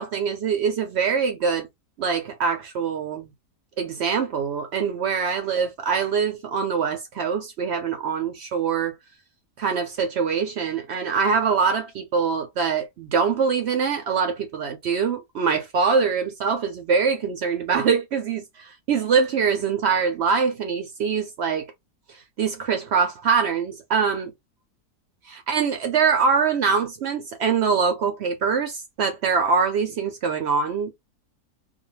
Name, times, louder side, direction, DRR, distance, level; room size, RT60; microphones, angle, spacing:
voice 1, 0.0-1.7 2.0-3.3 3.8-8.9 9.6-21.7 22.1-24.3 25.3-30.9, right 6 dB, 65° right, 0.6 m, -24 dB
2.5 x 2.2 x 2.9 m
omnidirectional pair, 1.6 m